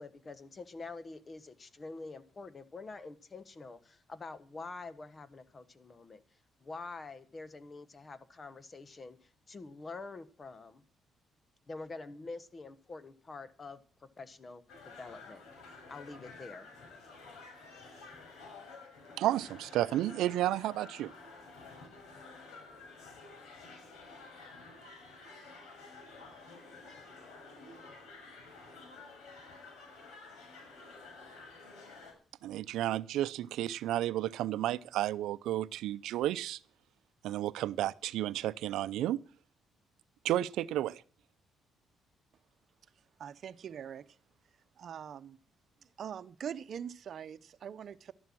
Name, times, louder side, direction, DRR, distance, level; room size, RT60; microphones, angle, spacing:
voice 1, 0.0-10.8 11.7-15.4 15.9-16.7, left 3 dB, 35° left, 1.4 m, -46 dB
sound 1, 14.7-32.1, left 3 dB, 85° left, 6.4 m, -51 dB
voice 2, 19.2-21.1 32.4-36.6 37.2-39.2 40.2-41.0, right 13 dB, 85° right, 0.5 m, -32 dB
voice 3, 43.2-44.2 44.8-45.4 46.0-48.1, right 8 dB, 60° right, 0.8 m, -43 dB
13.0 x 11.0 x 6.1 m
cardioid pair, 90°, 0 cm